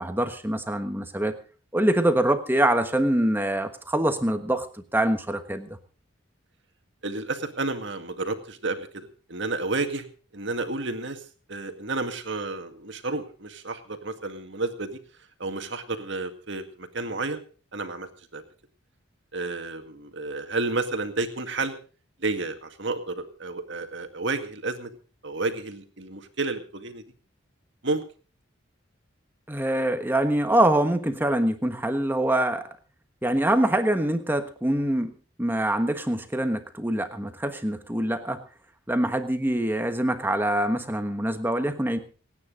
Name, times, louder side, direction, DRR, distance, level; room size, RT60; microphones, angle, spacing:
voice 1, 0.0-1.3 1.7-4.7 4.9-5.7 29.5-32.7 33.2-35.1 35.4-38.4 38.9-42.0, right 1 dB, 10° right, 8 dB, 1.3 m, -24 dB
voice 2, 7.0-10.1 10.3-11.2 11.5-15.0 15.4-17.4 17.7-18.4 19.3-21.8 22.2-24.9 25.2-27.0 27.8-28.0, right 3 dB, 60° right, 7 dB, 2.0 m, -31 dB
27.5 x 9.6 x 3.9 m, 0.38 s
head